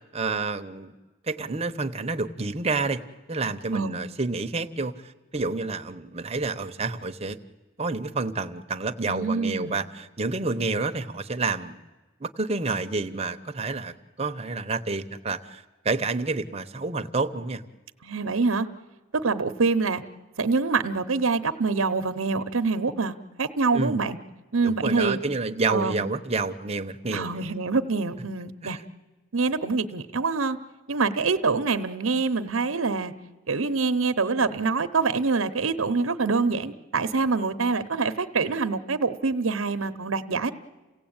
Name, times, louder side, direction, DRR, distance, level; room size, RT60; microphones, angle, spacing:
voice 1, 0.1-0.9 1.3-3.0 3.3-7.4 7.8-11.8 12.2-17.6 23.7-24.0 24.6-27.5 28.6-28.8, right 3 dB, 30° right, 8 dB, 0.9 m, -29 dB
voice 2, 9.0-9.8 18.0-18.7 19.1-20.0 20.4-24.2 24.5-25.2 25.7-26.1 27.1-28.8 29.3-30.6 30.9-33.1 33.5-40.5, right 4 dB, 85° right, 10 dB, 0.9 m, -25 dB
28.5 x 17.0 x 8.8 m, 1.2 s
head